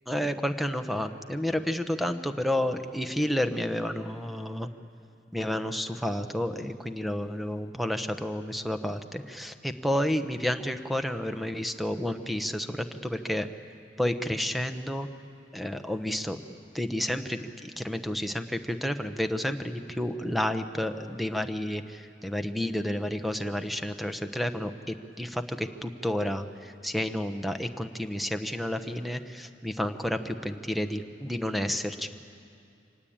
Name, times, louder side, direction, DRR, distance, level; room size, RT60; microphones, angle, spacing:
voice 1, 0.1-4.7 5.3-13.5 14.0-15.1 15.5-16.4 16.7-32.1, left 1 dB, ahead, 8 dB, 0.9 m, -30 dB
25.5 x 19.0 x 8.7 m, 2.4 s
head